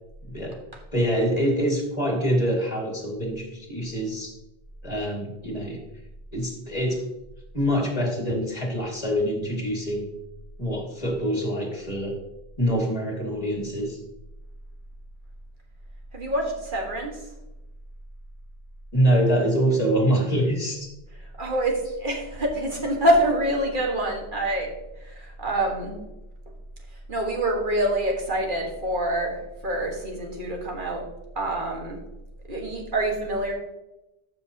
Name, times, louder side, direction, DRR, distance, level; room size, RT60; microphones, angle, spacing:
voice 1, 0.3-0.6 0.9-4.3 4.8-5.8 6.3-7.1 7.5-10.1 10.6-12.2 12.6-14.0 18.9-20.9, equal, 35° left, -1 dB, 2.3 m, -25 dB
voice 2, 16.1-17.2 21.4-24.7 25.0-26.0 27.1-31.0 31.3-32.0 32.5-33.5, right 1 dB, 50° right, 1 dB, 1.8 m, -26 dB
12.5 x 6.2 x 2.9 m, 0.95 s
omnidirectional pair, 1.1 m